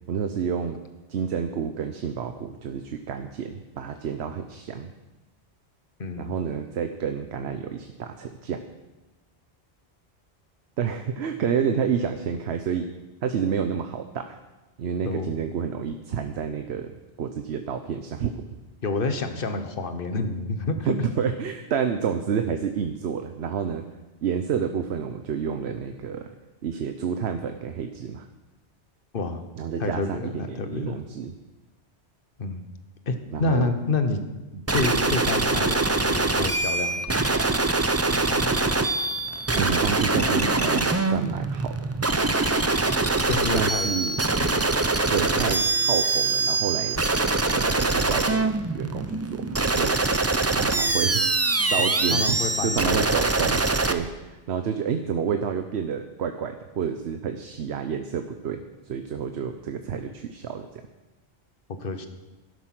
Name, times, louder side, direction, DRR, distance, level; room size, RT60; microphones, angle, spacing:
voice 1, 0.1-0.8 1.1-4.9 6.2-8.6 10.8-12.9 13.2-14.4 14.8-18.5 20.9-23.8 24.2-26.3 26.6-28.3 29.6-31.3 33.3-33.7 34.5-34.6 39.6-41.9 43.5-44.2 45.1-47.0 47.5-50.0 50.5-51.3 51.7-60.8, right 7 dB, 75° right, 7 dB, 1.0 m, -29 dB
voice 2, 6.0-6.4 15.0-15.3 18.8-20.9 29.1-29.4 29.8-31.0 32.4-32.6 33.1-34.2 34.7-37.0 38.0-38.5 43.3-43.9 51.8-53.1 55.0-55.1 61.8-62.1, left 3 dB, 55° left, 8 dB, 1.3 m, -29 dB
sound 1, 34.7-53.9, right 3 dB, 20° right, 0.5 m, -24 dB
13.0 x 11.0 x 6.0 m, 1.1 s
omnidirectional pair, 1.1 m